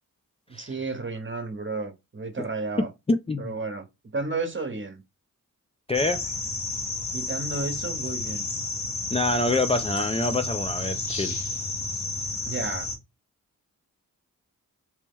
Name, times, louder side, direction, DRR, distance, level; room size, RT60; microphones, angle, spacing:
voice 1, 0.5-2.9 3.4-3.9 4.1-5.0 7.1-8.5 12.4-12.9, right 3 dB, 35° right, 1.0 m, -32 dB
voice 2, 3.1-3.5 5.9-6.2 9.1-11.4, left 2 dB, 15° left, 0.4 m, -26 dB
sound 1, 5.9-13.0, left 3 dB, 55° left, 1.3 m, -31 dB
3.0 x 2.8 x 3.6 m
cardioid pair, 55°, 35 cm